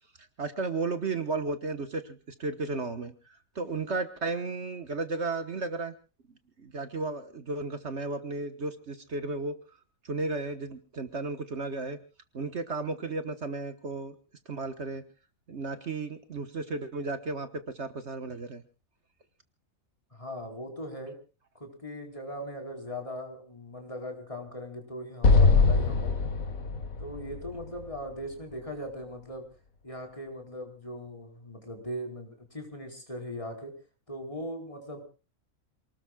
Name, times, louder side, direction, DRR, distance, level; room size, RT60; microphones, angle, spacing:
voice 1, 0.4-5.9 6.6-9.6 10.0-12.0 12.3-14.2 14.5-15.0 15.5-18.6, right 3 dB, 55° right, 9 dB, 1.6 m, -34 dB
voice 2, 20.1-21.2 21.5-26.1 27.0-29.4 29.8-33.7 34.1-35.0, equal, 25° left, 3 dB, 4.4 m, -39 dB
Explosion, 25.2-28.5, left 4 dB, 90° left, 2.0 m, -23 dB
28.5 x 19.5 x 2.4 m, 0.35 s
omnidirectional pair, 1.4 m